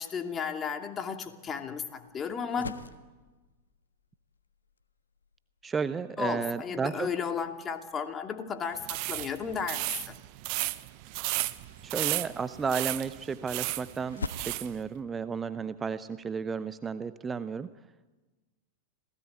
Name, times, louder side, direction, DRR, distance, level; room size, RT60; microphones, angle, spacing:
voice 1, 0.0-2.7 6.2-10.2, left 6 dB, 25° left, 5 dB, 2.6 m, -34 dB
sound 1, 2.0-16.5, left 4 dB, 75° left, 1.4 m, -48 dB
voice 2, 5.6-7.1 11.8-17.7, right 5 dB, 15° right, 13 dB, 0.8 m, -33 dB
sound 2, 8.8-14.7, right 21 dB, 45° right, 1.0 m, -34 dB
27.0 x 17.5 x 8.5 m, 1.2 s
figure-of-eight pair, 90°, 0 cm